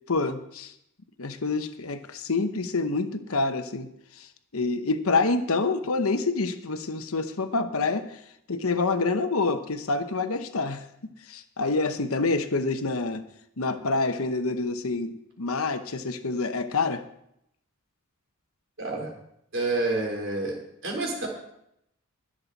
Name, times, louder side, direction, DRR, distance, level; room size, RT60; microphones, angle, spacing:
voice 1, 0.1-0.7 1.2-3.9 4.2-4.3 4.5-8.2 8.5-10.8 11.3-13.2 13.6-17.0, left 3 dB, 75° left, 9 dB, 1.0 m, -27 dB
voice 2, 18.8-19.1 19.5-20.6 20.8-21.3, right 2 dB, 55° right, 0 dB, 3.8 m, -28 dB
22.5 x 7.5 x 4.1 m, 0.77 s
head